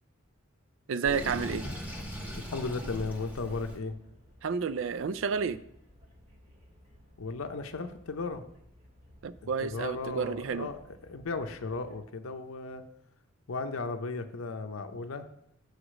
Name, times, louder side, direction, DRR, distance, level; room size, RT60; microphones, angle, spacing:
voice 1, 0.9-1.6 4.4-5.6 9.2-10.7, right 5 dB, 65° right, 15 dB, 0.4 m, -30 dB
Sink (filling or washing), 1.0-3.8, equal, 10° right, 1.1 m, -39 dB
sound 1, 1.9-12.0, left 1 dB, 35° right, 1.9 m, -58 dB
voice 2, 2.5-4.0 7.2-8.4 9.6-12.8 13.5-15.3, left 3 dB, 80° left, 7 dB, 0.6 m, -35 dB
6.5 x 4.9 x 6.2 m, 0.74 s
head